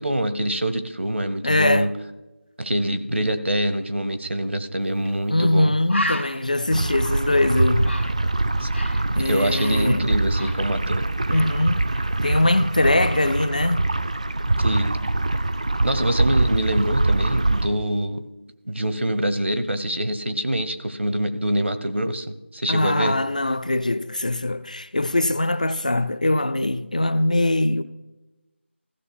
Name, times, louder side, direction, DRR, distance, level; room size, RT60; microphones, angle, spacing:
voice 1, 0.0-1.9 2.6-5.7 8.6-8.7 9.2-11.0 14.6-15.0 15.8-18.2 18.7-23.2, right 1 dB, 70° right, 1.0 m, -25 dB
voice 2, 1.4-1.9 3.1-3.2 5.3-7.9 8.9-10.1 11.3-13.9 22.7-27.8, left 1 dB, 40° left, 0.4 m, -22 dB
Bird, 5.0-5.2 5.5-5.6 5.9-9.1 9.3-11.0 11.3-11.6, left 1 dB, 75° left, 1.8 m, -33 dB
sound 1, 6.7-17.7, right 2 dB, 35° right, 0.4 m, -24 dB
15.0 x 6.7 x 4.4 m
figure-of-eight pair, 170°, 7 cm